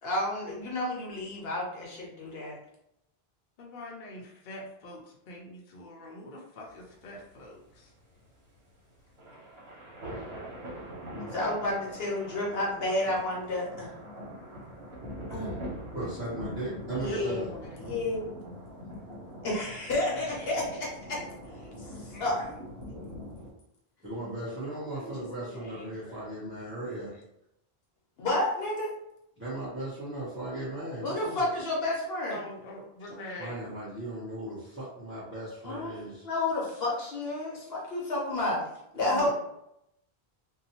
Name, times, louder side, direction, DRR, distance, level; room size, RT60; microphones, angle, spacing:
voice 1, 0.0-2.6 11.3-13.9 15.3-15.5 16.9-17.4 17.8-18.3 19.4-21.2 21.8-22.5 24.9-26.1 28.2-28.9 31.0-32.4 35.6-35.9 36.2-38.6 39.0-39.3, left 2 dB, 75° left, -3 dB, 1.0 m, -31 dB
voice 2, 3.6-7.9 16.9-17.8 32.3-33.7, left 1 dB, 55° left, -2 dB, 0.7 m, -44 dB
sound 1, 6.7-23.5, equal, 80° right, 1.2 m, -42 dB
voice 3, 15.9-17.5 24.0-27.1 29.4-31.5 33.4-36.3 39.0-39.3, right 1 dB, 15° right, -11 dB, 0.8 m, -37 dB
2.7 x 2.2 x 2.8 m, 0.80 s
omnidirectional pair, 1.0 m